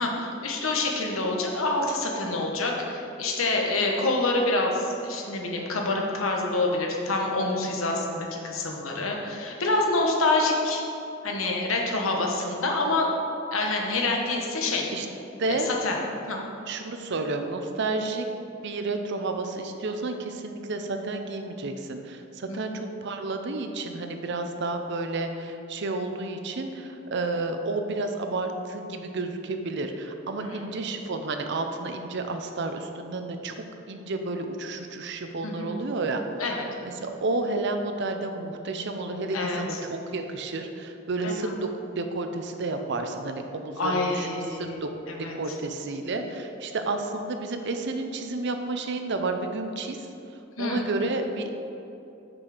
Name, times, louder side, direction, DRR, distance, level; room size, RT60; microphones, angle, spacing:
voice 1, 0.0-10.8 11.2-13.1 13.5-14.9 15.5-16.4 22.5-22.6 30.4-30.7 35.4-35.7 36.4-36.6 39.3-39.8 41.2-41.5 43.8-44.8 45.1-45.3 50.6-50.8, left 2 dB, 90° left, 0 dB, 1.1 m, -27 dB
voice 2, 15.4-15.7 16.7-18.3 18.6-33.5 33.9-36.2 36.8-44.9 45.2-50.1 50.6-51.5, right 2 dB, 60° right, 6 dB, 0.6 m, -31 dB
6.2 x 6.1 x 5.0 m, 2.8 s
head